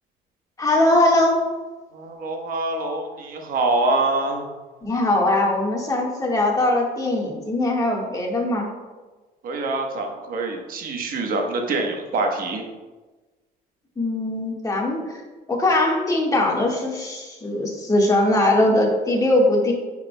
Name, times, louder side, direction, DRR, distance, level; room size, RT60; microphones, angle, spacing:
voice 1, 0.6-1.4 4.8-8.7 14.0-15.0 15.5-19.7, left 1 dB, 20° left, -2 dB, 1.5 m, -20 dB
voice 2, 1.9-4.4 9.4-12.6, right 2 dB, 55° right, 2 dB, 1.1 m, -25 dB
9.4 x 4.8 x 2.2 m, 1.2 s
cardioid pair, 110°, 17 cm